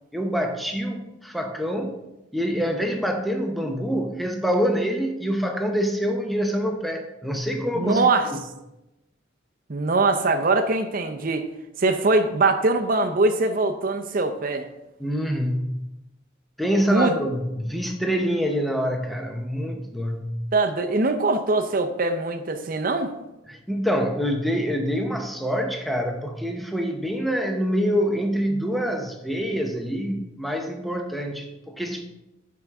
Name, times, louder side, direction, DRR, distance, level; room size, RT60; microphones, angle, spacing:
voice 1, 0.1-2.0 2.3-8.4 15.0-15.8 16.6-20.3 23.5-32.0, equal, ahead, 3 dB, 0.7 m, -26 dB
voice 2, 7.7-8.3 9.7-11.5 11.8-14.6 16.9-17.2 20.5-23.1, right 3 dB, 45° right, 6 dB, 0.6 m, -22 dB
11.0 x 4.7 x 3.6 m, 0.94 s
head